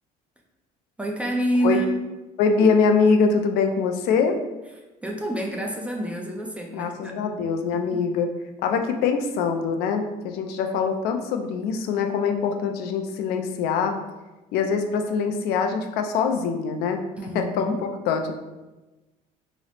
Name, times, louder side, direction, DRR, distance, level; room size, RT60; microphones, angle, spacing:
voice 1, 1.0-1.9 5.0-7.2 7.7-8.0 17.2-17.8, right 1 dB, 10° right, 1 dB, 0.3 m, -28 dB
voice 2, 2.4-4.4 6.7-8.3 8.6-14.0 14.5-17.0 17.3-17.7 18.1-18.4, left 5 dB, 70° left, 5 dB, 0.4 m, -23 dB
3.0 x 2.0 x 4.0 m, 1.1 s
cardioid pair, 145°, 17 cm